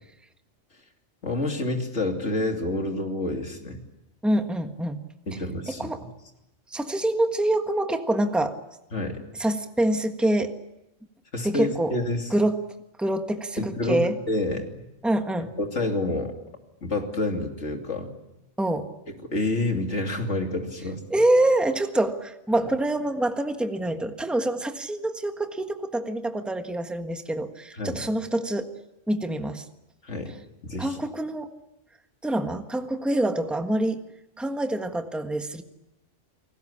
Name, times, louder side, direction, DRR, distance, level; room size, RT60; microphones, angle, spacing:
voice 1, 1.2-3.8 5.3-5.9 8.9-9.2 11.3-12.3 13.6-14.8 15.6-16.3 16.8-18.1 19.3-21.0 27.8-28.0 30.0-30.3 30.6-31.0, left 2 dB, 75° left, 3 dB, 3.2 m, -28 dB
voice 2, 4.2-5.0 5.8-6.0 6.7-8.6 9.4-10.6 11.4-11.9 12.3-12.6 13.0-14.2 15.0-15.5 18.6-18.9 21.1-28.7 29.1-29.7 30.8-31.5 32.2-34.0 34.4-35.6, right 1 dB, ahead, 6 dB, 1.4 m, -25 dB
30.0 x 20.0 x 8.7 m, 0.94 s
omnidirectional pair, 1.2 m